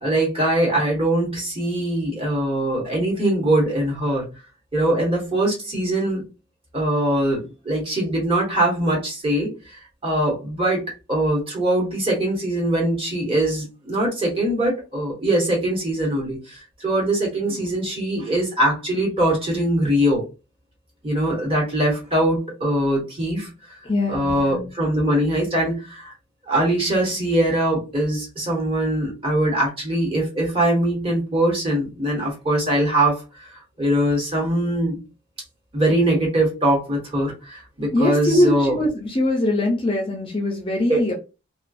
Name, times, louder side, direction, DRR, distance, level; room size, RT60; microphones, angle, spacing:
voice 1, 0.0-4.2 4.7-6.2 6.7-10.8 11.1-20.2 21.0-23.5 24.1-26.1 26.5-33.2 33.8-35.0 35.7-38.8 40.9-41.1, right 1 dB, 25° right, -2 dB, 1.2 m, -22 dB
voice 2, 23.8-24.7 37.9-41.1, left 1 dB, 25° left, 0 dB, 0.5 m, -22 dB
2.3 x 2.3 x 2.5 m, 0.29 s
head